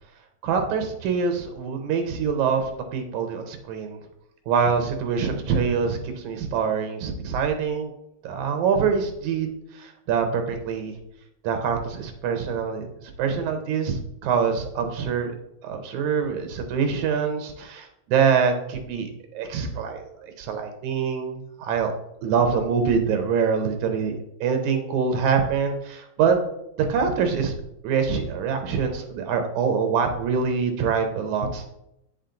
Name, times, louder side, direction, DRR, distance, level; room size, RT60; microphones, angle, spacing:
voice 1, 0.4-4.0 4.5-7.9 8.2-9.5 9.7-10.9 11.4-15.3 15.6-21.9 22.2-24.2 24.4-26.4 26.8-27.5 27.8-31.7, right 6 dB, 80° right, 6 dB, 2.3 m, -25 dB
8.9 x 5.7 x 3.9 m, 0.81 s
omnidirectional pair, 3.3 m